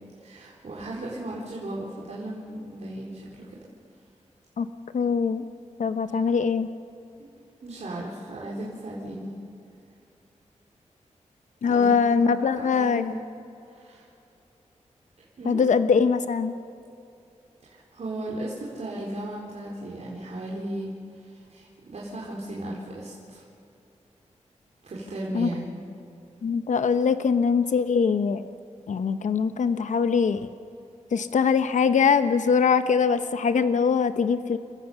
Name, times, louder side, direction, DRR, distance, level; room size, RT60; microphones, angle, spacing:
voice 1, 0.2-3.5 7.6-9.3 11.6-12.0 12.6-13.0 13.7-14.1 15.4-15.6 17.7-23.4 24.8-25.8, right 1 dB, 65° right, -6 dB, 4.1 m, -36 dB
voice 2, 4.6-5.4 5.8-6.7 11.6-13.1 15.4-16.6 25.3-25.5 26.4-28.4 28.9-30.5 31.1-34.6, left 6 dB, 80° left, 10 dB, 0.8 m, -22 dB
30.0 x 15.5 x 7.1 m, 2.7 s
wide cardioid pair, 90°, 12 cm